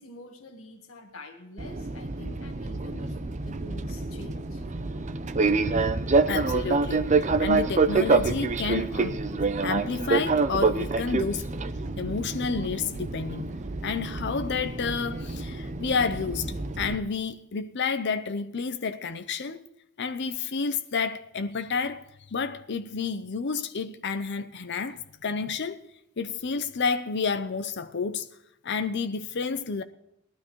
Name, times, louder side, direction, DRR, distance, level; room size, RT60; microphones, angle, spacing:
voice 1, 0.0-4.6, left 2 dB, 75° left, 1.6 m, -46 dB
Fixed-wing aircraft airplane, 1.6-16.9, right 3 dB, 35° right, 0.6 m, -27 dB
voice 2, 6.3-9.2 9.6-11.5 12.0-13.5 13.8-19.7 20.0-22.0 22.3-25.8 26.2-28.3 28.6-29.8, left 5 dB, 55° left, 0.6 m, -30 dB
19.5 x 12.0 x 3.1 m
head